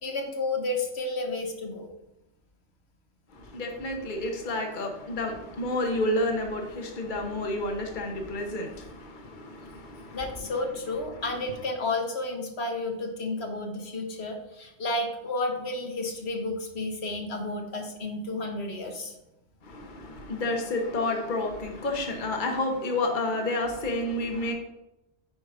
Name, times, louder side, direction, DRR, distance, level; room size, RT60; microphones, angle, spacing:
voice 1, 0.0-1.9 10.1-19.1 20.1-20.2, left 2 dB, 70° left, 1.5 m, -31 dB
voice 2, 3.3-10.4 11.1-11.2 19.6-24.5, left 2 dB, 50° left, 1.3 m, -30 dB
9.8 x 4.8 x 5.0 m
omnidirectional pair, 1.1 m